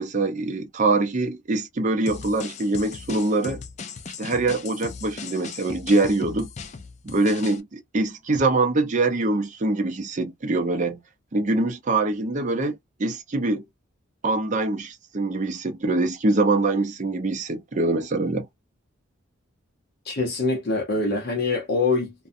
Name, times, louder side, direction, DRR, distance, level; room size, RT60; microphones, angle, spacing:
voice 1, 0.0-3.6 4.2-6.5 7.0-11.0 11.3-13.6 14.2-18.5, right 2 dB, 35° right, 0.5 m, -24 dB
sound 1, 2.1-7.6, left 5 dB, 35° left, 0.4 m, -38 dB
voice 2, 20.0-22.1, left 3 dB, 50° left, 0.8 m, -24 dB
2.5 x 2.2 x 2.5 m
head